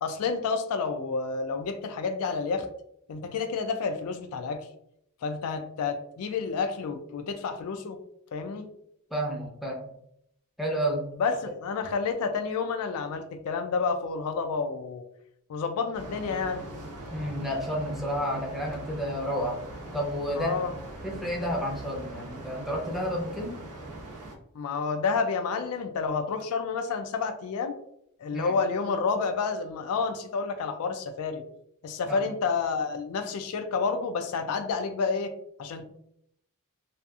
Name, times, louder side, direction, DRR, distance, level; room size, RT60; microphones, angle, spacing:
voice 1, 0.0-2.7 3.1-4.7 5.2-8.0 8.3-8.7 11.2-15.0 15.5-16.7 20.4-20.8 24.5-27.8 28.2-31.4 31.8-35.3 35.6-35.8, left 5 dB, 70° left, 7 dB, 0.3 m, -29 dB
voice 2, 9.1-9.9 10.6-11.0 17.1-19.6 19.9-20.6 21.0-23.6 28.3-28.5 32.1-32.3, equal, ahead, -3 dB, 0.5 m, -31 dB
sound 1, 15.9-24.4, right 1 dB, 80° right, 0.6 m, -41 dB
2.7 x 2.4 x 2.3 m, 0.74 s
head